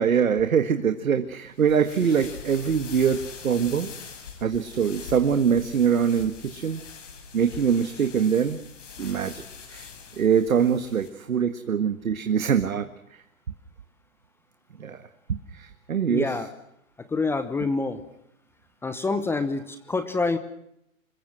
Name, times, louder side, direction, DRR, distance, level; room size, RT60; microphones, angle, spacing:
voice 1, 0.0-3.9 4.4-6.8 7.3-8.6 9.0-9.4 9.7-9.9 10.2-13.2 14.8-15.0 15.3-16.3, right 7 dB, 75° right, 8 dB, 1.8 m, -23 dB
sound 1, 1.6-11.1, left 6 dB, 60° left, 6.2 m, -43 dB
voice 2, 16.1-16.5 17.1-18.0 18.8-20.4, left 3 dB, 5° left, 10 dB, 0.9 m, -26 dB
27.0 x 22.5 x 6.2 m, 0.76 s
hypercardioid pair, 135°, 42 cm